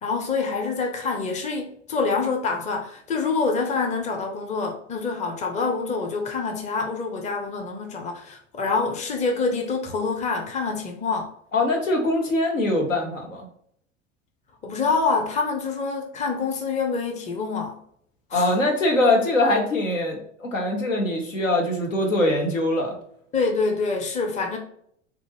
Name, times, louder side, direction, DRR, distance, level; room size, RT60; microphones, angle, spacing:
voice 1, 0.0-11.3 14.6-17.8 18.3-18.6 23.3-24.6, left 4 dB, 20° left, 0.7 m, -26 dB
voice 2, 11.5-13.5 18.3-23.0, left 1 dB, 80° left, 1.1 m, -22 dB
4.2 x 2.5 x 2.9 m
figure-of-eight pair, 80°, 38 cm